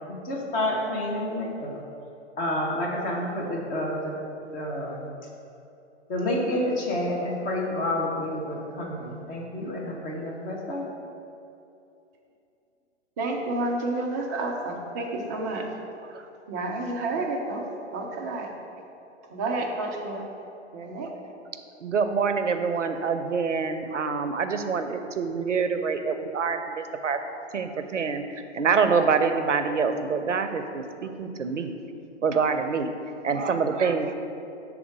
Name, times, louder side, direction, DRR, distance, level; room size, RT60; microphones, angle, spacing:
voice 1, 0.1-1.8 2.4-4.1 4.5-5.1 6.1-10.9, left 1 dB, 25° left, -2 dB, 0.9 m, -29 dB
voice 2, 13.2-15.7 16.5-17.6 17.9-18.5 19.3-20.2 20.7-21.1, right 2 dB, 15° right, 0 dB, 0.3 m, -30 dB
voice 3, 21.8-27.2 27.5-28.2 28.5-31.7 32.2-32.9 33.2-34.1, right 5 dB, 85° right, 8 dB, 0.5 m, -26 dB
6.0 x 3.6 x 4.7 m, 2.8 s
figure-of-eight pair, 110°, 36 cm